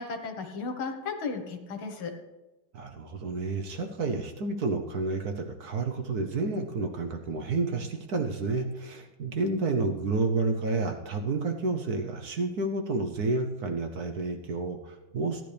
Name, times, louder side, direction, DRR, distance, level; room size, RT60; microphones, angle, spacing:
voice 1, 0.0-2.1, left 4 dB, 80° left, 5 dB, 2.2 m, -35 dB
voice 2, 2.7-15.4, right 3 dB, 55° right, 4 dB, 1.2 m, -30 dB
15.5 x 10.5 x 3.4 m, 1.1 s
omnidirectional pair, 2.3 m